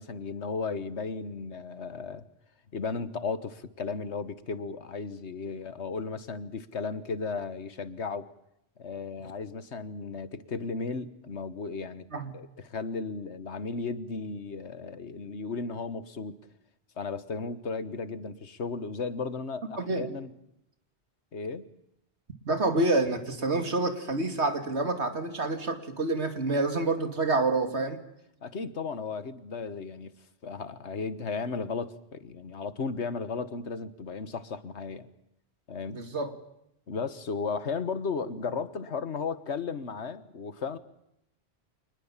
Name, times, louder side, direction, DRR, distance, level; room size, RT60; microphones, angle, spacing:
voice 1, 0.0-2.2 2.7-8.3 8.8-12.1 12.3-16.4 17.0-20.3 21.3-21.7 28.4-30.1 30.4-35.1 35.7-36.0 36.9-40.8, left 4 dB, 85° left, 13 dB, 1.7 m, -35 dB
voice 2, 19.8-20.1 22.4-28.0 35.9-36.3, right 2 dB, 85° right, 7 dB, 2.8 m, -28 dB
26.5 x 20.5 x 7.4 m, 0.80 s
omnidirectional pair, 1.1 m